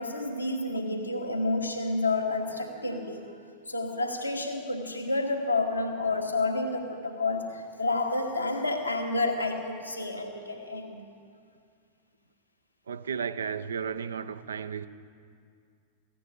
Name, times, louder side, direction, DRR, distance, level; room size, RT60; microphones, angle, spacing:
voice 1, 0.0-3.3 3.7-11.1, left 2 dB, 85° left, 1.5 m, -30 dB
voice 2, 12.9-14.9, right 6 dB, 70° right, 0.5 m, -33 dB
15.5 x 8.5 x 8.0 m
figure-of-eight pair, 90°, 0 cm